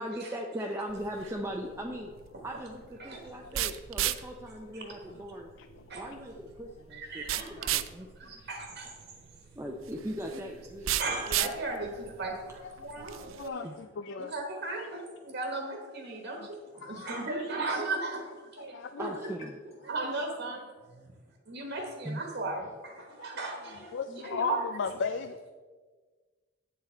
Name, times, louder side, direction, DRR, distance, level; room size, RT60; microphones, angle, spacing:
voice 1, 0.0-2.1 2.4-5.5 5.9-8.3 9.5-11.5 12.5-12.6 13.6-13.8 19.0-19.6 22.0-22.2, equal, 15° right, 0 dB, 0.6 m, -39 dB
sound 1, 0.9-13.5, right 12 dB, 90° right, 0.4 m, -36 dB
voice 2, 3.2-3.6 4.9-5.8 12.6-14.3 16.4-16.5 16.7-17.5 18.6-19.1 23.0-23.3 23.7-25.5, left 5 dB, 65° left, 9 dB, 0.4 m, -38 dB
voice 3, 6.9-7.7 8.2-8.9 11.0-13.7 14.3-16.5 16.8-19.1 19.9-20.6 21.5-24.6, right 3 dB, 60° right, 1 dB, 1.3 m, -36 dB
9.0 x 7.2 x 4.4 m, 1.4 s
head